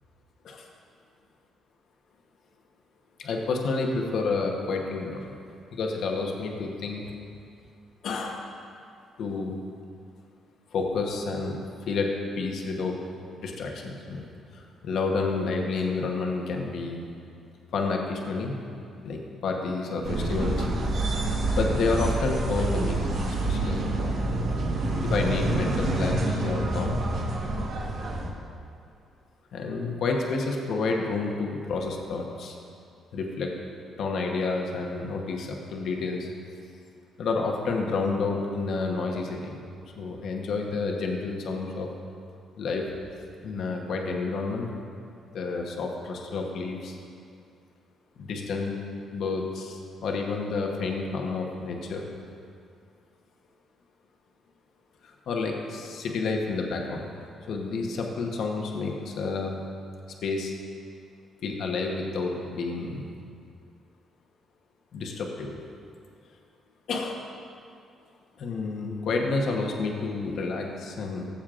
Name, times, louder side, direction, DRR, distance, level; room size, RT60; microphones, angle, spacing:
voice 1, 3.2-5.4 5.7-7.0 8.0-8.4 9.2-9.5 10.7-13.0 13.4-14.3 14.5-17.1 17.7-18.5 19.0-20.7 21.1-21.2 21.5-23.2 23.4-23.9 25.0-27.0 29.5-32.6 33.1-33.5 34.0-36.3 37.2-39.6 39.9-41.9 42.6-42.9 43.4-44.7 45.3-47.0 48.2-48.8 49.1-52.1 55.0-57.1 57.5-59.6 60.2-60.5 61.4-63.1 64.9-65.6 66.9-67.2 68.4-71.3, left 3 dB, 70° left, 1 dB, 1.0 m, -30 dB
sound 1, 20.0-28.3, right 2 dB, 65° right, 1.3 m, -27 dB
15.5 x 7.1 x 2.5 m, 2.4 s
cardioid pair, 75°, 0 cm